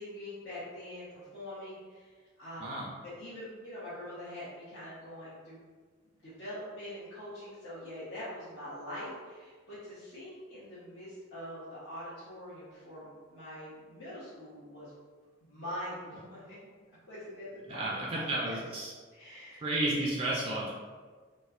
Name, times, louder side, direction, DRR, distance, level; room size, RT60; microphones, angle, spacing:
voice 1, 0.0-2.1 2.4-5.6 6.2-14.9 15.4-16.6 17.1-18.7 19.1-19.6, left 1 dB, 70° left, -13 dB, 0.9 m, -44 dB
voice 2, 2.6-2.9 17.7-18.9 19.6-20.7, right 1 dB, 30° right, -4 dB, 0.3 m, -32 dB
4.1 x 2.1 x 2.4 m, 1.5 s
head